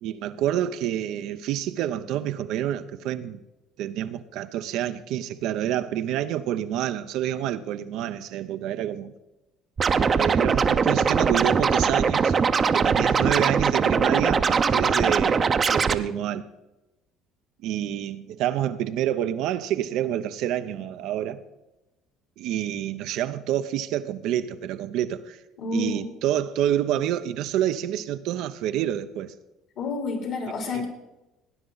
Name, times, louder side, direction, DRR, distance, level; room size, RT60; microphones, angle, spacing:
voice 1, 0.0-3.4 3.8-9.1 10.0-12.3 12.7-16.5 17.6-21.4 22.4-25.4 25.7-29.3 30.7-30.8, right 11 dB, 75° right, 0.7 m, -28 dB
Scratching (performance technique), 9.8-16.0, right 5 dB, 35° right, 0.7 m, -21 dB
voice 2, 25.6-26.1 29.8-30.9, left 4 dB, 65° left, 3.6 m, -29 dB
18.0 x 9.6 x 4.0 m
supercardioid pair, 80°, 0 cm